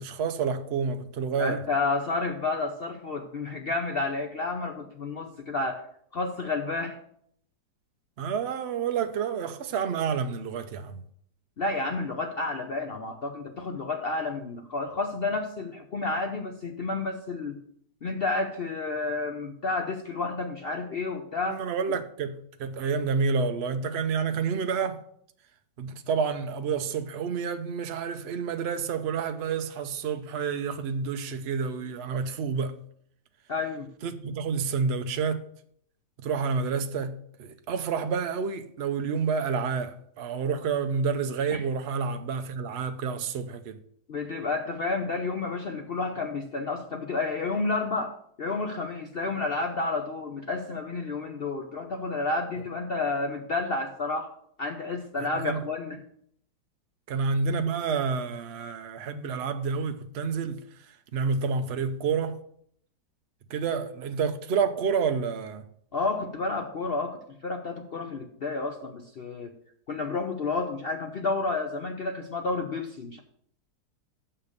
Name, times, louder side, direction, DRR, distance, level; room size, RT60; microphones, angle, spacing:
voice 1, 0.0-1.6 8.2-11.0 21.5-25.0 25.8-32.8 34.0-35.4 36.2-43.8 55.2-55.6 57.1-62.4 63.5-65.6, right 5 dB, 70° right, 0.6 m, -29 dB
voice 2, 1.4-5.8 6.1-7.0 11.6-17.6 18.0-21.6 33.5-33.9 41.5-41.6 44.1-54.3 54.6-56.0 65.9-69.5 69.9-73.2, left 3 dB, 75° left, 0.5 m, -30 dB
6.6 x 5.8 x 6.6 m
omnidirectional pair, 1.9 m